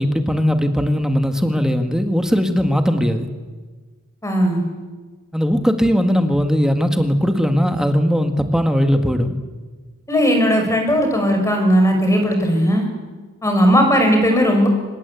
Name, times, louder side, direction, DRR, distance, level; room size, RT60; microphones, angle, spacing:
voice 1, 0.0-3.3 5.3-9.3, equal, 5° right, 6 dB, 1.7 m, -18 dB
voice 2, 4.2-4.6 10.1-12.9 13.4-14.7, equal, 15° left, 3 dB, 5.4 m, -16 dB
25.5 x 21.0 x 8.4 m, 1.4 s
head